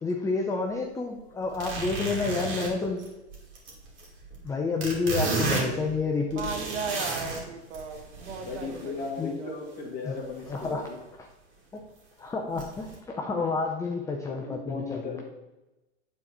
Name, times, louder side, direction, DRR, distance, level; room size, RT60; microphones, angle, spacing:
voice 1, 0.0-3.0 4.4-6.5 9.2-9.3 10.1-10.2 10.5-10.8 11.2-11.3 12.2-15.0, left 4 dB, 10° left, 2 dB, 0.5 m, -29 dB
sound 1, 1.5-4.5 4.8-7.4 7.7-9.1 10.4-10.8 11.1-11.2 11.8-11.9 12.6-12.9, right 2 dB, 35° right, 2.6 m, -33 dB
voice 2, 4.7-5.9 6.2-9.9, right 5 dB, 70° right, 5 dB, 1.3 m, -38 dB
voice 3, 8.4-11.0 14.3-15.2, left 4 dB, 25° left, -1 dB, 1.9 m, -36 dB
8.4 x 4.1 x 4.3 m, 1.0 s
hypercardioid pair, 105°, 35 cm